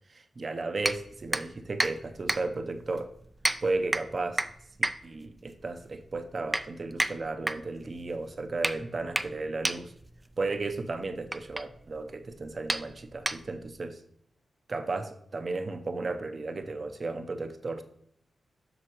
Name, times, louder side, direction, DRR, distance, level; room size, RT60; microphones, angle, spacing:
voice 1, 0.1-3.1 3.6-4.4 5.0-9.9 10.4-14.0 14.7-17.8, right 3 dB, 45° right, 8 dB, 0.7 m, -34 dB
sound 1, 0.8-13.8, right 1 dB, 15° right, 0.4 m, -34 dB
7.7 x 6.1 x 3.0 m, 0.71 s
cardioid pair, 75°, 0 cm